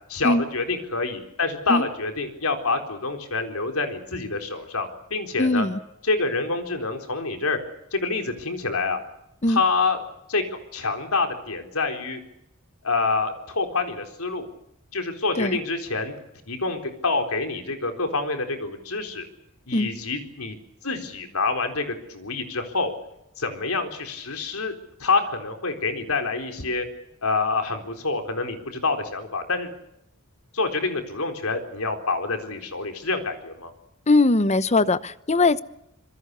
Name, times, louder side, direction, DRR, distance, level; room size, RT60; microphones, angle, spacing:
voice 1, 0.1-5.7 6.0-7.6 7.9-9.0 9.5-10.0 10.3-10.4 10.7-12.2 12.8-14.5 14.9-16.1 16.5-19.3 19.7-20.6 20.8-22.9 23.4-24.7 25.0-26.9 27.2-29.7 30.5-33.7, left 3 dB, 80° left, 6 dB, 4.1 m, -27 dB
voice 2, 5.4-5.8 9.4-9.6 15.3-15.6 19.7-19.9 34.1-35.6, left 2 dB, 30° left, 15 dB, 0.9 m, -20 dB
26.5 x 22.5 x 6.9 m, 0.82 s
head